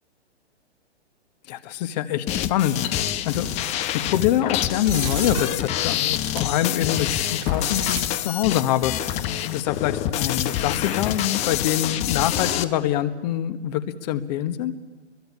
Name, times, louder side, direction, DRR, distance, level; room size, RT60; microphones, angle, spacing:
voice 1, 1.5-3.5 3.9-9.2 9.5-14.7, left 11 dB, 35° left, 11 dB, 1.5 m, -25 dB
sound 1, 2.3-12.6, left 11 dB, 20° left, 0.8 m, -26 dB
sound 2, 2.6-3.3 4.5-6.6 6.9-8.0, right 14 dB, 25° right, 0.9 m, -36 dB
27.5 x 22.5 x 8.7 m, 1.2 s
figure-of-eight pair, 130°, 35 cm